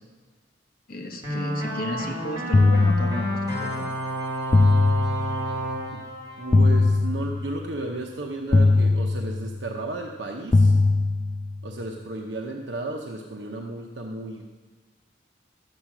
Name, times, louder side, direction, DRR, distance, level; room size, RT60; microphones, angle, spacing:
voice 1, 0.9-3.3 3.6-3.8, left 1 dB, 55° left, 2 dB, 1.4 m, -33 dB
sound 1, 1.2-7.4, right 1 dB, 25° right, 3.5 m, -31 dB
sound 2, 2.5-3.7 4.5-5.7 6.5-7.7 8.5-9.7 10.5-11.7, left 3 dB, 20° left, 0.3 m, -20 dB
voice 2, 6.4-10.8 11.6-14.4, right 2 dB, 80° right, 1 dB, 0.8 m, -33 dB
12.5 x 8.1 x 6.0 m, 1.4 s
head